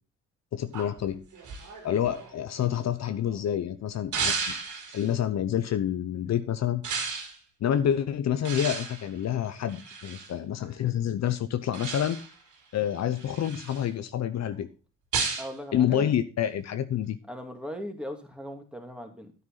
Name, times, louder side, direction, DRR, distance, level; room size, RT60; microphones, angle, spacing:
voice 1, 0.5-1.2 1.8-4.5 4.9-6.8 7.6-12.2 12.7-14.7 15.7-17.2, left 10 dB, 60° left, 11 dB, 0.8 m, -28 dB
sound 1, 0.7-3.4 4.1-5.1 6.8-7.4 8.5-10.3 11.7-12.4 12.9-13.9 15.1-15.5, right 5 dB, 80° right, 3.7 m, -34 dB
voice 2, 15.4-16.1 17.3-19.3, equal, 5° right, 4 dB, 2.5 m, -38 dB
9.6 x 9.5 x 4.1 m, 0.33 s
cardioid pair, 90°, 30 cm